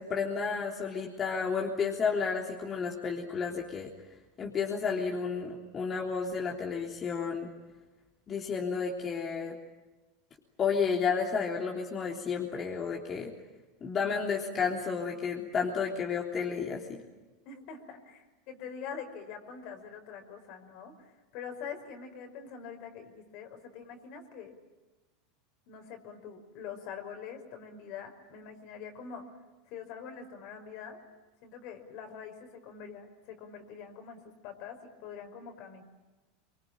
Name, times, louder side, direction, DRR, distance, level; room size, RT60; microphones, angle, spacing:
voice 1, 0.0-3.9 4.4-7.5 8.3-9.6 10.6-13.3 13.8-17.0, left 5 dB, 30° left, -1 dB, 3.5 m, -31 dB
voice 2, 17.5-24.5 25.7-29.3 29.7-31.0 31.4-35.8, left 7 dB, 60° left, 5 dB, 5.6 m, -44 dB
25.0 x 24.0 x 9.0 m, 1.2 s
hypercardioid pair, 100°, 0 cm